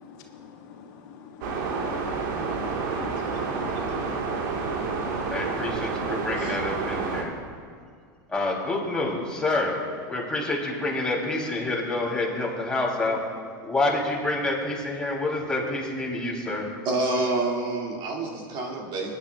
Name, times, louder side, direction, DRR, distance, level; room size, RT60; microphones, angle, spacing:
voice 1, 0.0-5.1, left 6 dB, 65° left, 2 dB, 1.3 m, -46 dB
sound 1, 1.4-7.2, right 4 dB, 70° right, 1.6 m, -29 dB
voice 2, 5.3-7.4 8.3-13.2 13.6-16.7, left 2 dB, 10° left, -3 dB, 3.1 m, -28 dB
voice 3, 16.8-19.1, right 2 dB, 45° right, -1 dB, 2.3 m, -28 dB
19.5 x 10.5 x 2.4 m, 2.1 s
hypercardioid pair, 105°, 11 cm